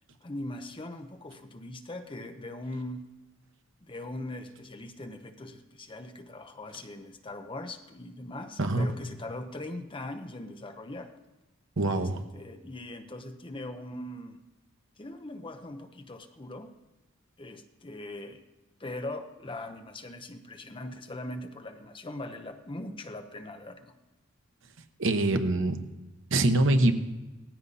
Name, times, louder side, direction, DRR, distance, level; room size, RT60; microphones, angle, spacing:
voice 1, 0.2-3.0 3.8-11.1 11.9-14.4 15.0-16.7 17.4-18.4 18.8-23.9, left 1 dB, 25° left, 7 dB, 0.9 m, -41 dB
voice 2, 11.8-12.2 25.0-25.8 26.3-26.9, right 2 dB, 65° right, 7 dB, 1.1 m, -24 dB
18.0 x 15.0 x 4.2 m, 1.1 s
head